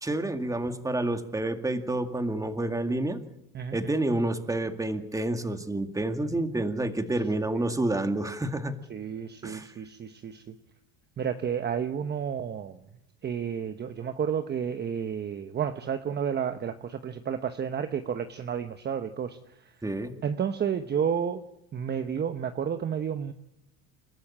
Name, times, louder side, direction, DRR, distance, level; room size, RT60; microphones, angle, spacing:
voice 1, 0.0-3.2 3.7-8.8 9.4-9.7 19.8-20.2, right 2 dB, 10° right, 7 dB, 2.1 m, -29 dB
voice 2, 8.9-10.6 11.2-12.8 13.2-19.4 20.2-21.4 21.7-23.3, right 8 dB, 30° right, 9 dB, 1.1 m, -31 dB
29.0 x 13.0 x 8.8 m, 0.85 s
supercardioid pair, 120°, 35 cm